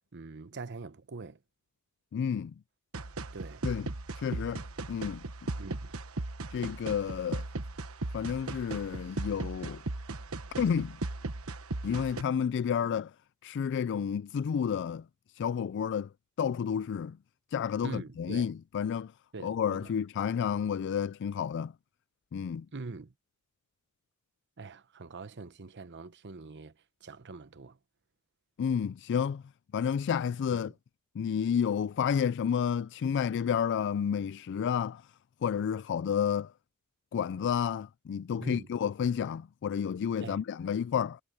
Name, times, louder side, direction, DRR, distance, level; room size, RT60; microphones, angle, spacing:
voice 1, 0.1-1.4 3.3-3.6 5.5-5.9 17.8-18.5 19.3-19.9 22.7-23.1 24.6-26.7 27.0-27.8 30.5-30.7 38.4-38.7 40.2-40.4, right 3 dB, 55° right, 0.9 m, -44 dB
voice 2, 2.1-2.5 3.6-3.9 4.2-5.2 6.5-7.4 8.1-9.8 10.6-11.0 11.8-13.1 13.4-15.1 15.4-16.1 16.4-17.2 17.5-19.1 19.4-21.7 22.3-22.7 28.6-29.4 29.7-30.7 31.2-35.1 35.4-36.5 37.1-41.2, left 7 dB, 55° left, 0.3 m, -30 dB
sound 1, 2.9-12.2, right 2 dB, 70° right, 1.2 m, -37 dB
head